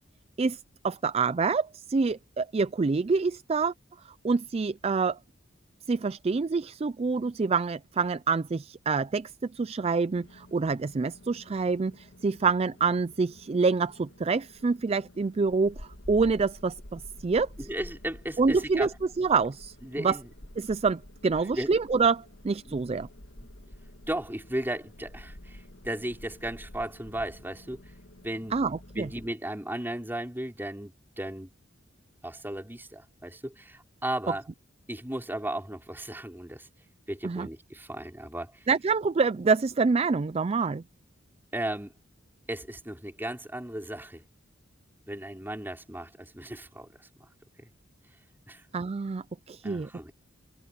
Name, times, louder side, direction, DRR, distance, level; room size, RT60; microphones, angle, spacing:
voice 1, 0.8-3.7 4.2-5.2 5.9-17.5 18.4-18.9 19.2-20.2 20.6-23.1 28.5-29.1 37.2-37.5 38.7-40.8 48.7-49.9, right 4 dB, 30° right, 0.4 m, -26 dB
sound 1, 10.1-29.3, left 1 dB, 75° left, 2.6 m, -49 dB
voice 2, 17.6-18.9 19.8-20.3 21.4-21.7 22.6-22.8 24.1-27.8 28.2-28.6 28.9-31.5 32.2-34.5 34.9-36.7 37.1-38.6 41.5-41.9 42.5-44.2 45.1-47.3 48.5-48.6 49.6-50.1, right 1 dB, 10° right, 4.4 m, -35 dB
head